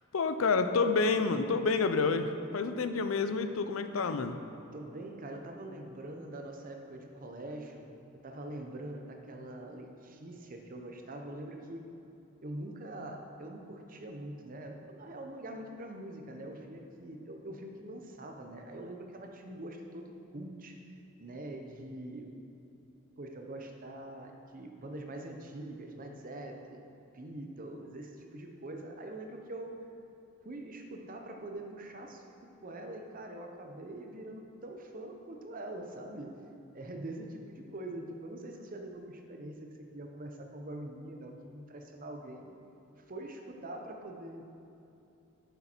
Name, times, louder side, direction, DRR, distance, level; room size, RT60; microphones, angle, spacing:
voice 1, 0.1-4.4, left 4 dB, 80° left, 9 dB, 0.5 m, -29 dB
voice 2, 4.7-7.9 8.2-11.8 12.4-20.8 21.2-22.3 23.2-26.8 27.1-29.8 30.4-32.2 32.6-36.3 36.7-42.5 43.1-44.4, right 1 dB, 40° right, 3 dB, 0.8 m, -44 dB
9.7 x 6.9 x 4.4 m, 2.9 s
head